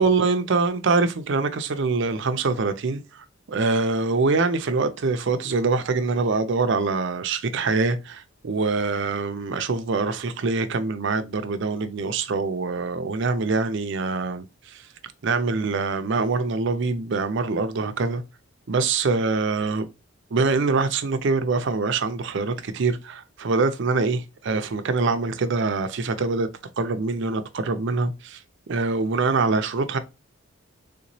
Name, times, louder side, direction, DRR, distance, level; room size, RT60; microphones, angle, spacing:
voice 1, 0.0-3.0 3.5-14.5 14.7-14.8 15.2-18.2 18.7-19.9 20.3-26.5 26.8-28.4 28.7-30.0, right 4 dB, 55° right, 0.4 m, -24 dB
3.5 x 2.9 x 2.6 m
head